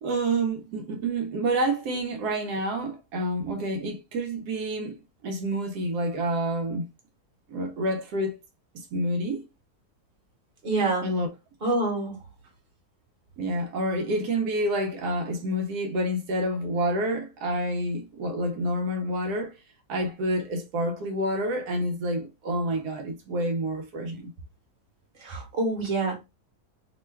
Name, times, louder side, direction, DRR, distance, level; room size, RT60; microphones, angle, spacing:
voice 1, 0.0-6.9 7.5-8.4 8.7-9.4 11.0-11.3 13.4-19.6 19.9-24.3, right 1 dB, 85° right, 1.1 m, -28 dB
voice 2, 10.6-11.1 11.6-12.2 25.2-26.1, right 2 dB, 40° right, 1.2 m, -26 dB
3.0 x 2.2 x 3.1 m
omnidirectional pair, 1.7 m